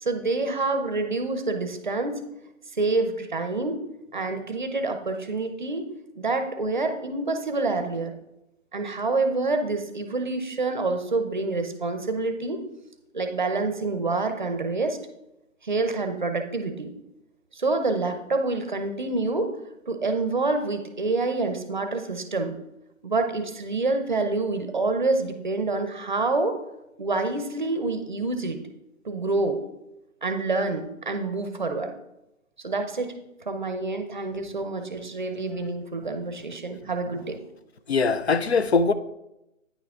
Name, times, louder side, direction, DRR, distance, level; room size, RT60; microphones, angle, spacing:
voice 1, 0.0-2.2 2.8-3.8 4.1-5.9 6.2-8.2 8.7-12.6 13.1-15.0 15.6-16.9 17.5-19.5 19.9-22.5 23.0-26.6 27.0-28.6 29.0-29.6 30.2-31.9 32.6-33.2 33.5-37.4, right 3 dB, 35° right, 0.6 m, -27 dB
voice 2, 37.9-38.9, left 4 dB, 50° left, 0.6 m, -21 dB
9.3 x 6.0 x 3.6 m
figure-of-eight pair, 160°, 41 cm